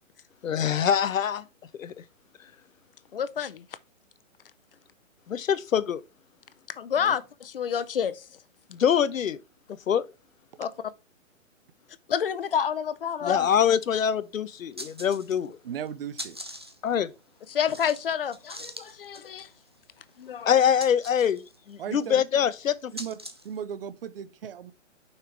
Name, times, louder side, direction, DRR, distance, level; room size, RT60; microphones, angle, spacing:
voice 1, 0.4-1.4 1.8-1.9 5.3-6.0 8.7-9.4 9.9-10.1 13.2-15.6 16.8-17.1 20.5-21.4 21.7-22.9, left 8 dB, 85° left, 0.9 m, -24 dB
voice 2, 3.1-3.6 6.8-8.2 10.6-10.7 12.1-13.5 17.5-19.5 20.2-20.5, left 8 dB, 45° left, 0.6 m, -29 dB
sound 1, 14.1-14.2 14.6-15.6 15.9-23.6, equal, 20° right, 0.4 m, -43 dB
voice 3, 15.6-16.4 21.8-22.2 22.9-23.2 23.4-24.7, right 8 dB, 45° right, 0.7 m, -36 dB
6.8 x 5.7 x 3.2 m
hypercardioid pair, 160°, 39 cm